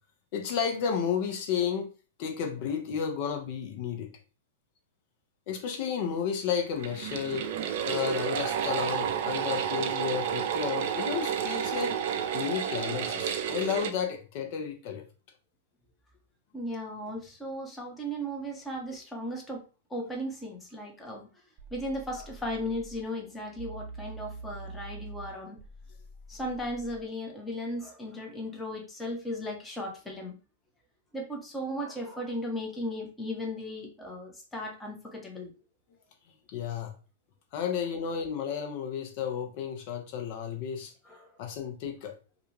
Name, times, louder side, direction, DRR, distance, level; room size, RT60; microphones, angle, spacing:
voice 1, 0.3-1.9 2.2-4.1 5.5-7.5 7.9-12.0 12.3-15.0 36.5-36.9 37.5-40.9 41.4-42.2, left 7 dB, 50° left, 0.7 m, -32 dB
sound 1, 6.7-13.9, right 8 dB, 55° right, 0.4 m, -31 dB
voice 2, 16.5-19.6 19.9-21.3 21.7-25.6 26.3-30.3 31.1-35.5 41.0-41.3, equal, 10° left, 0.8 m, -36 dB
sound 2, 21.6-23.0 23.6-27.0, right 3 dB, 25° right, 0.9 m, -45 dB
2.4 x 2.3 x 3.1 m
hypercardioid pair, 105°, 0 cm